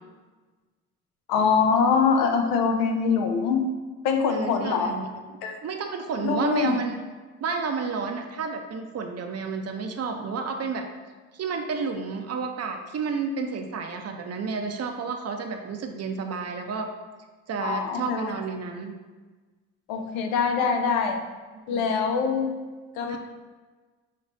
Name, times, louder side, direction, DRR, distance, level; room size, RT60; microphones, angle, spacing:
voice 1, 1.3-3.6 4.0-4.9 5.4-5.6 6.2-6.8 17.6-18.3 19.9-21.2 21.7-22.5 23.0-23.2, left 5 dB, 80° left, 4 dB, 0.7 m, -23 dB
voice 2, 4.3-5.1 5.3-7.0 7.4-10.9 11.3-16.9 17.5-18.9 21.7-21.9 23.1-23.2, right 5 dB, 45° right, 4 dB, 0.7 m, -31 dB
6.5 x 3.0 x 2.6 m, 1.3 s
supercardioid pair, 70°, 36 cm